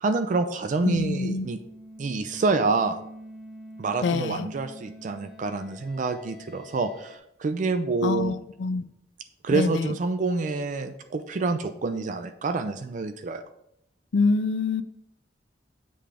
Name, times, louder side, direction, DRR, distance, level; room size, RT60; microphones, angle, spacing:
voice 1, 0.0-1.6 2.0-3.0 3.8-8.4 9.4-13.4, right 3 dB, 45° right, 9 dB, 0.4 m, -27 dB
voice 2, 0.8-1.5 4.0-4.5 8.0-8.8 9.5-9.9 14.1-14.8, left 3 dB, 85° left, 13 dB, 0.4 m, -25 dB
sound 1, 0.9-7.2, equal, ahead, 1.1 m, -46 dB
7.7 x 3.4 x 4.9 m, 0.77 s
head